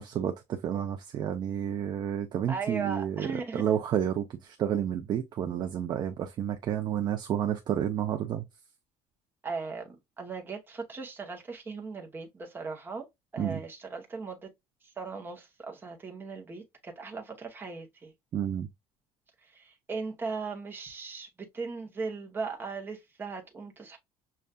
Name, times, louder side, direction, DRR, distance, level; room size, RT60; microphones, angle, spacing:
voice 1, 0.0-8.4 13.4-13.6 18.3-18.7, right 9 dB, 30° right, 0.4 m, -30 dB
voice 2, 2.5-3.6 9.4-13.1 13.3-14.5 15.0-18.1 19.4-24.0, right 4 dB, 15° right, 0.8 m, -38 dB
6.5 x 2.3 x 2.2 m
cardioid pair, 175°, 15 cm